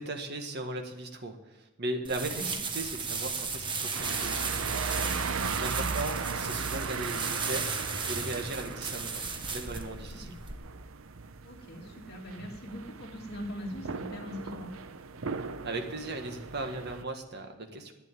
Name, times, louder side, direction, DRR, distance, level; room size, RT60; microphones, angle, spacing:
voice 1, 0.0-7.7 8.1-9.2 9.5-10.3 15.6-17.9, right 2 dB, 50° right, 4 dB, 1.6 m, -38 dB
sound 1, 2.0-10.5, right 4 dB, 25° right, 1.1 m, -35 dB
sound 2, 3.9-17.0, right 5 dB, 70° right, 0.7 m, -37 dB
voice 2, 11.4-14.7, equal, 50° left, -1 dB, 2.6 m, -41 dB
11.0 x 9.2 x 9.0 m, 1.0 s
head